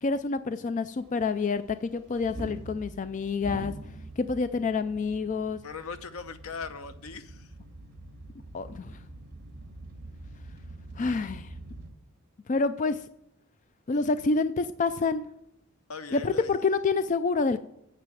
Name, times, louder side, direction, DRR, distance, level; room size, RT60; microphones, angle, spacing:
voice 1, 0.0-3.7 4.2-5.6 8.5-9.0 11.0-11.5 12.5-13.0 13.9-15.3 16.1-17.6, left 4 dB, 35° left, 12 dB, 0.4 m, -27 dB
sound 1, 1.0-11.9, right 1 dB, 50° right, 2.5 m, -45 dB
voice 2, 5.6-7.5 15.9-16.5, left 5 dB, 75° left, 10 dB, 0.8 m, -39 dB
9.5 x 6.7 x 7.6 m, 0.80 s
head